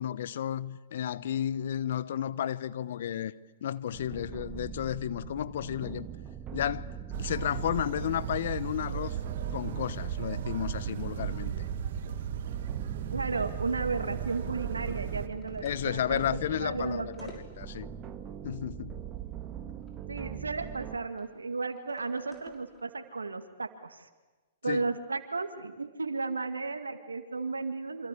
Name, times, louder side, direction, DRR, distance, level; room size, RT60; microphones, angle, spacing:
voice 1, 0.0-3.3 3.6-6.1 6.5-9.2 9.5-11.5 15.6-17.9 18.4-19.1 24.7-24.9, left 10 dB, 60° left, 1.0 m, -33 dB
sound 1, 3.9-21.0, right 9 dB, 25° right, 2.1 m, -41 dB
sound 2, 7.1-15.3, right 9 dB, 60° right, 2.2 m, -36 dB
sound 3, 12.3-20.1 20.3-20.4 21.2-22.8, left 2 dB, 15° left, 6.1 m, -57 dB
voice 2, 13.1-16.2 16.5-17.4 20.1-24.1 24.6-28.1, right 3 dB, 90° right, 2.1 m, -34 dB
27.5 x 26.0 x 8.4 m
hypercardioid pair, 120°, 0 cm